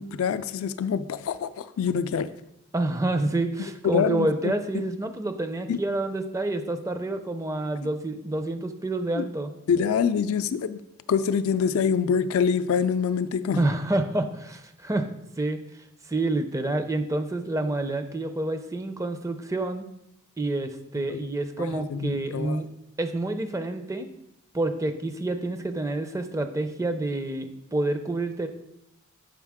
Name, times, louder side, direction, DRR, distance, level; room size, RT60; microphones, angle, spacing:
voice 1, 0.0-2.3 3.8-4.8 5.7-5.8 9.1-9.3 9.7-10.8 11.1-13.6 21.1-21.3 21.7-22.6, left 6 dB, 65° left, 12 dB, 0.3 m, -25 dB
voice 2, 2.7-9.5 13.6-15.1 15.4-15.6 16.0-19.8 20.4-22.7 23.0-24.1 24.5-28.5, right 2 dB, 15° right, 8 dB, 0.4 m, -28 dB
7.3 x 5.4 x 3.5 m, 0.84 s
head